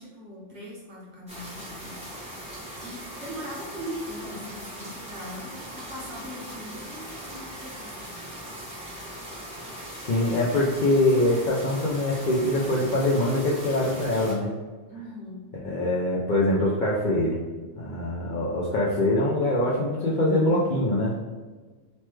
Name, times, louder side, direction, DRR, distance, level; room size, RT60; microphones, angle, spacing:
voice 1, 0.0-2.0 2.8-8.1 14.9-15.4, equal, 65° right, -5 dB, 1.2 m, -40 dB
sound 1, 1.3-14.3, equal, 5° right, 0.6 m, -40 dB
voice 2, 10.1-14.5 15.6-17.4 17.8-21.1, left 1 dB, 65° left, -6 dB, 0.5 m, -23 dB
3.1 x 2.2 x 3.1 m, 1.3 s
omnidirectional pair, 1.3 m